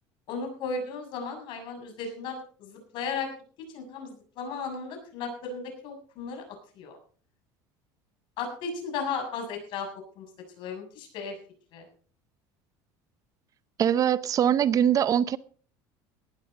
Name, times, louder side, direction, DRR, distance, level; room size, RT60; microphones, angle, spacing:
voice 1, 0.3-3.3 3.7-6.4 6.8-7.0 8.4-9.9 10.2-10.3 10.6-11.4 11.7-11.9, left 5 dB, 65° left, 6.9 m, -35 dB
voice 2, 13.8-15.4, right 9 dB, 40° right, 0.7 m, -22 dB
18.0 x 12.5 x 4.0 m
supercardioid pair, 110°, 9 cm